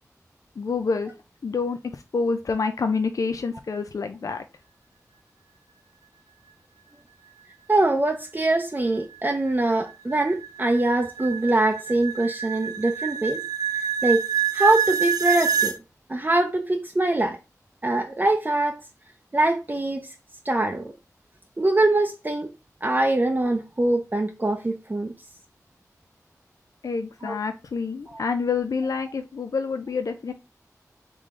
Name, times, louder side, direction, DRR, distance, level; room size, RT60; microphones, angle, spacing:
voice 1, 0.6-1.1 1.4-4.4 26.8-30.3, left 4 dB, 65° left, 0.4 m, -27 dB
voice 2, 7.7-13.4 13.7-14.2 14.5-15.7 16.1-17.4 17.8-18.8 19.3-20.1 20.4-20.9 21.6-22.5 22.8-25.1 27.2-27.3 28.1-28.2, right 2 dB, 30° right, 0.5 m, -23 dB
sound 1, 8.6-15.8, right 8 dB, 90° right, 0.4 m, -27 dB
3.7 x 3.3 x 3.6 m
cardioid pair, 50°, 6 cm